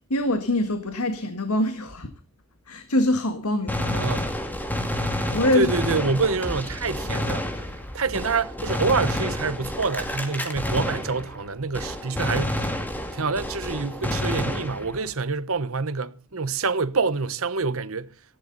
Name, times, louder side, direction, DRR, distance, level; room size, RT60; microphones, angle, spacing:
voice 1, 0.1-2.1 2.7-4.0 5.1-5.7, left 1 dB, 85° left, 1.8 m, -24 dB
Gunshot gunfire, 3.7-11.5 11.7-15.1, left 1 dB, 10° left, 2.3 m, -29 dB
voice 2, 3.9-4.3 5.5-7.5 7.9-12.7 13.1-18.2, right 4 dB, 65° right, 1.1 m, -26 dB
18.5 x 15.0 x 4.1 m
head